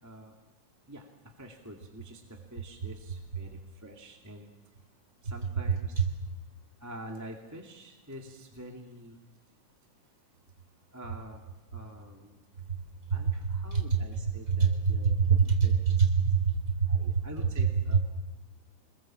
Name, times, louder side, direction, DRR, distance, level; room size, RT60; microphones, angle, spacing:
voice 1, 0.0-0.4 0.9-4.5 5.2-6.2 6.8-9.2 10.9-11.4 11.7-12.5 13.1-15.1 15.6-15.7 16.9-18.0, equal, 5° right, 1 dB, 1.8 m, -47 dB
voice 2, 14.6-15.7 16.2-17.2, right 6 dB, 25° right, 4 dB, 3.7 m, -25 dB
26.0 x 21.5 x 7.6 m, 1.0 s
omnidirectional pair, 3.5 m